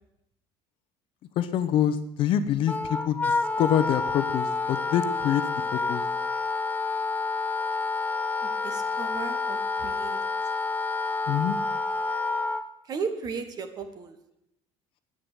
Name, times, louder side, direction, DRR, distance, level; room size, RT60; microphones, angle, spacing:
voice 1, 1.3-5.4 5.7-6.0 11.3-11.6, left 10 dB, 50° left, 11 dB, 1.0 m, -26 dB
Wind instrument woodwind instrument, 2.7-12.6, left 3 dB, 15° left, 0.5 m, -29 dB
voice 2, 8.4-10.2 12.9-14.2, right 5 dB, 35° right, 9 dB, 1.3 m, -35 dB
10.0 x 8.9 x 8.1 m, 0.84 s
cardioid pair, 160°, 12 cm